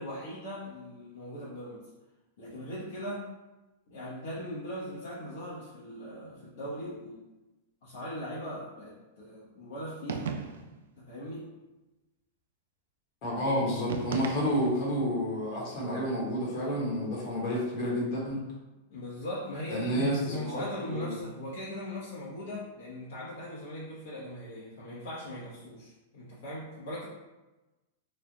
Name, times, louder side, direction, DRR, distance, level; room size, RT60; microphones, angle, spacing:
voice 1, 0.0-1.9 2.4-3.3 3.9-7.2 7.8-10.3 11.0-11.5 18.9-27.1, equal, 70° left, -8 dB, 1.1 m, -39 dB
sound 1, 10.1-10.8 13.9-14.9, right 5 dB, 85° right, 0.4 m, -36 dB
voice 2, 13.2-18.4 19.7-21.1, equal, 40° left, -5 dB, 1.2 m, -30 dB
3.2 x 2.4 x 3.9 m, 1.1 s
supercardioid pair, 165°, 0 cm